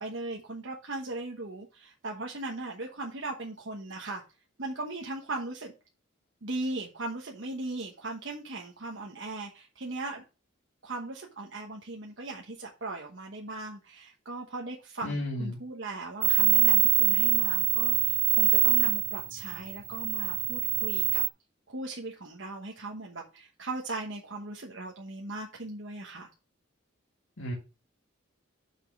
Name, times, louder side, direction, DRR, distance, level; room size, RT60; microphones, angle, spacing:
voice 1, 0.0-4.2 4.6-5.7 6.4-10.2 10.8-21.2 21.7-26.3, right 2 dB, 65° right, 0 dB, 1.2 m, -38 dB
voice 2, 15.0-15.6 27.4-27.5, left 1 dB, 65° left, -3 dB, 2.1 m, -33 dB
sound 1, 16.2-21.3, right 16 dB, 45° right, 0.3 m, -24 dB
6.1 x 5.3 x 6.1 m, 0.31 s
head